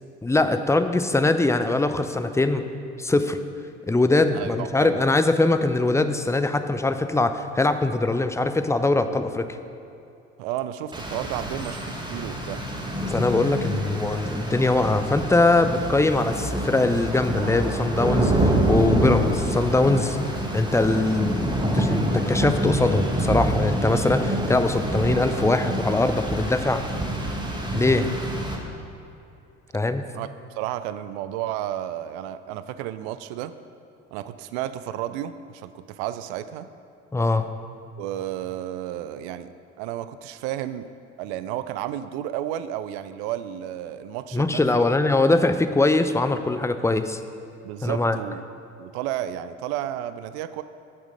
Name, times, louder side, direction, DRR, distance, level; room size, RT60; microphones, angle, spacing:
voice 1, 0.2-2.7 3.0-3.4 3.9-9.5 13.1-20.2 20.5-26.8 27.7-28.1 29.7-30.0 37.1-37.5 44.3-47.2 47.8-48.2, left 2 dB, 10° left, 9 dB, 0.5 m, -22 dB
voice 2, 4.3-5.0 10.4-12.6 28.0-28.2 30.1-30.3 30.5-33.5 34.1-36.7 38.0-39.5 39.8-40.9 41.2-44.9 47.6-48.4 48.8-50.6, right 12 dB, 65° right, 12 dB, 0.5 m, -32 dB
Rain, 10.9-28.6, right 1 dB, 10° right, 1.7 m, -26 dB
11.5 x 6.4 x 5.1 m, 2.7 s
figure-of-eight pair, 50°, 37 cm